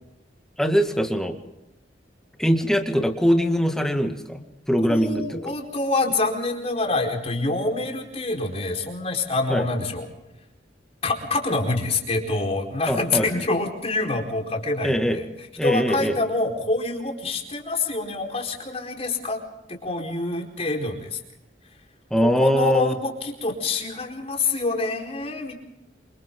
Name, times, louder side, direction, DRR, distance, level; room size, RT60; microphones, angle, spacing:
voice 1, 0.6-1.4 2.4-4.4 4.7-5.5 9.5-9.6 12.9-13.3 14.8-15.2 15.6-16.2 22.1-22.9, equal, 5° left, 4 dB, 2.1 m, -22 dB
voice 2, 4.8-10.1 11.0-19.4 19.7-21.2 22.3-25.5, left 2 dB, 35° left, 2 dB, 4.5 m, -26 dB
27.5 x 26.5 x 3.8 m, 0.92 s
head